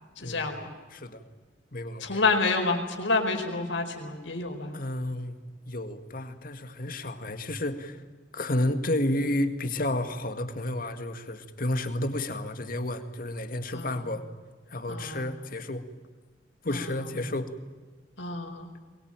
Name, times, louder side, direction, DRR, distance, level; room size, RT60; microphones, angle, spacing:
voice 1, 0.2-0.7 2.0-4.7 13.7-14.0 14.9-15.3 16.7-16.8 18.2-18.7, left 3 dB, 90° left, 3 dB, 4.9 m, -28 dB
voice 2, 0.9-1.2 1.7-2.2 4.7-5.4 5.7-8.0 8.3-14.2 14.7-15.8 16.6-17.5, left 1 dB, 50° left, 8 dB, 2.1 m, -31 dB
23.0 x 21.0 x 9.0 m, 1.4 s
head